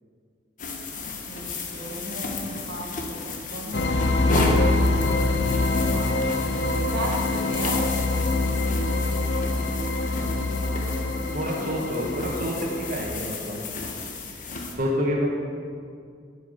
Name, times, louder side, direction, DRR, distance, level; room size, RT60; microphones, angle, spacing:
sound 1, 0.6-14.7, left 3 dB, 50° left, 1.2 m, -33 dB
voice 1, 1.3-4.1 4.7-6.6 6.9-7.9, right 1 dB, 85° right, -2 dB, 1.8 m, -35 dB
sound 2, 3.7-13.0, left 2 dB, 80° left, 0.7 m, -25 dB
voice 2, 11.3-13.6 14.8-15.3, equal, 50° right, -3 dB, 1.4 m, -28 dB
8.5 x 5.9 x 8.1 m, 2.2 s
head